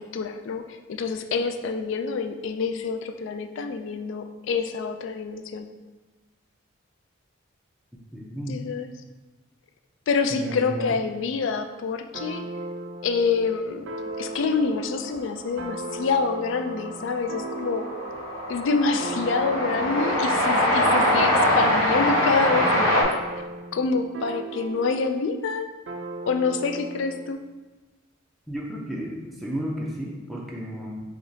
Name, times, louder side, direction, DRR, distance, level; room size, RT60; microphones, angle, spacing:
voice 1, 0.0-5.7 8.5-8.9 10.1-12.5 13.0-13.9 14.2-17.9 18.5-23.1 23.7-25.7 26.2-27.4, left 4 dB, 65° left, 8 dB, 0.3 m, -27 dB
voice 2, 8.1-8.6 10.3-11.0 28.5-31.0, equal, ahead, -3 dB, 0.5 m, -33 dB
sound 1, 12.1-18.4 19.0-25.2 25.9-27.3, right 2 dB, 60° right, 0.3 m, -37 dB
Train, 15.6-15.7 15.9-23.0, equal, 85° left, 0.9 m, -23 dB
4.8 x 2.9 x 2.6 m, 1.2 s
head